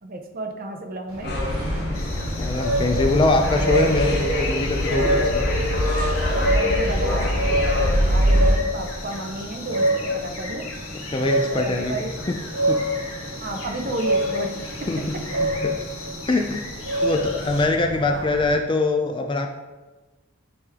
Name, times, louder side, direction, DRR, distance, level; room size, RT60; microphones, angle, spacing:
voice 1, 0.0-1.4 6.2-7.6 8.1-10.7 11.5-12.1 13.4-15.2 18.1-18.3, right 1 dB, 40° right, 4 dB, 0.7 m, -32 dB
sound 1, 1.1-18.5, equal, 65° right, 1.9 m, -28 dB
sound 2, 1.2-8.5, equal, 50° left, 1.2 m, -23 dB
sound 3, 1.9-17.7, left 3 dB, 80° left, 1.4 m, -38 dB
voice 2, 2.3-5.5 11.1-12.0 12.3-12.4 12.7-12.8 14.9-15.7 16.3-16.6 17.0-19.5, left 2 dB, 20° left, 4 dB, 0.4 m, -23 dB
9.4 x 3.4 x 3.6 m, 1.2 s
head